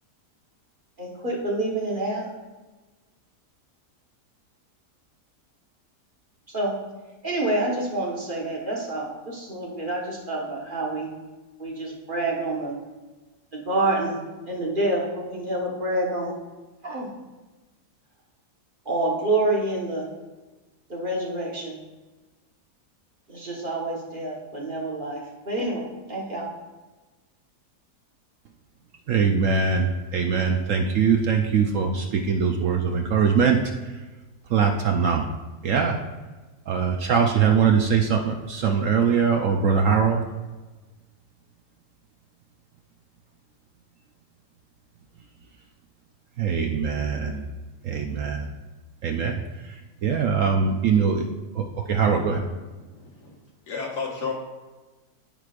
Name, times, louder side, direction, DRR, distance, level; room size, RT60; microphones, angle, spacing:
voice 1, 1.0-2.3 6.5-6.8 7.2-11.1 11.6-12.8 13.5-16.3 16.8-17.1 18.8-20.1 20.9-21.8 23.3-26.5, right 2 dB, 35° right, -3 dB, 1.4 m, -27 dB
voice 2, 29.1-33.6 34.5-35.3 35.6-36.0 36.7-40.2 46.4-47.5 47.8-48.5 49.0-49.8 50.0-51.2 51.5-52.4, right 6 dB, 65° right, 3 dB, 0.9 m, -22 dB
voice 3, 52.7-53.3 53.7-54.3, left 5 dB, 85° left, -1 dB, 2.0 m, -33 dB
14.0 x 4.9 x 2.5 m, 1.2 s
omnidirectional pair, 1.7 m